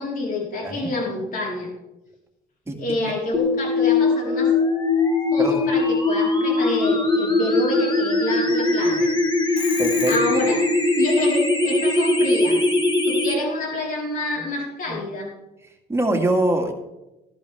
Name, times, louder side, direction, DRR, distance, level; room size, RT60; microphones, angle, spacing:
voice 1, 0.0-1.7 2.8-4.5 5.3-9.1 9.5-9.7 10.1-10.6 11.0-12.6 13.0-15.3, left 2 dB, 55° left, -2 dB, 4.3 m, -28 dB
voice 2, 2.7-3.1 5.4-5.6 9.8-10.1 14.9-15.0 15.9-16.7, right 1 dB, 15° right, 2 dB, 2.2 m, -23 dB
sound 1, 3.3-13.3, left 2 dB, 25° left, 1.7 m, -20 dB
Telephone, 9.6-10.6, left 8 dB, 90° left, 1.5 m, -34 dB
16.0 x 11.5 x 3.5 m, 0.97 s
cardioid pair, 110°, 17 cm